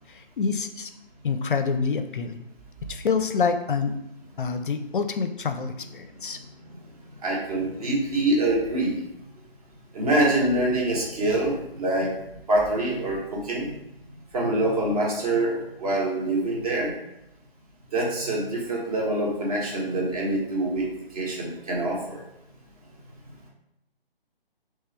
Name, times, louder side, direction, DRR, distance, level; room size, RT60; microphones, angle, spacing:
voice 1, 0.4-0.9 1.2-2.4 2.9-3.9 4.4-6.4, left 5 dB, 60° left, 8 dB, 0.5 m, -26 dB
voice 2, 7.2-9.0 9.9-12.2 12.5-13.8 14.3-16.9 17.9-22.2, right 1 dB, 40° right, -3 dB, 1.5 m, -25 dB
3.6 x 3.2 x 4.3 m, 0.84 s
figure-of-eight pair, 155°, 30 cm